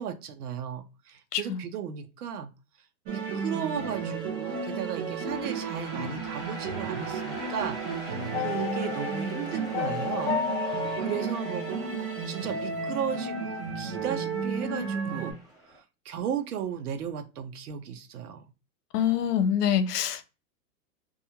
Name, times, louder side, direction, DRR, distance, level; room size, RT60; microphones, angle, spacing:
voice 1, 0.0-2.5 3.1-11.6 12.3-15.3 15.7-15.8 16.0-18.4, right 8 dB, 75° right, 0.8 m, -35 dB
sound 1, 3.1-15.3, right 5 dB, 25° right, 0.3 m, -33 dB
sound 2, 4.3-15.8, equal, 10° right, 0.8 m, -45 dB
sound 3, 8.3-12.5, left 8 dB, 45° left, 0.6 m, -33 dB
voice 2, 18.9-20.2, left 9 dB, 85° left, 0.7 m, -25 dB
2.4 x 2.3 x 2.8 m
hypercardioid pair, 130°, 46 cm